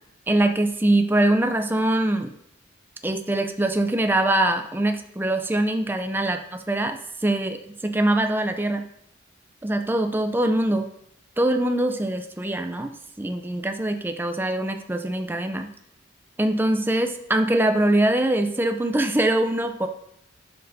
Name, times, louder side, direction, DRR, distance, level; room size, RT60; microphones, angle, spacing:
voice 1, 0.3-2.3 3.0-6.4 6.7-8.8 9.6-10.9 11.4-12.9 13.2-15.7 16.4-19.9, right 1 dB, 10° right, 6 dB, 0.4 m, -23 dB
11.5 x 6.6 x 2.7 m, 0.76 s
head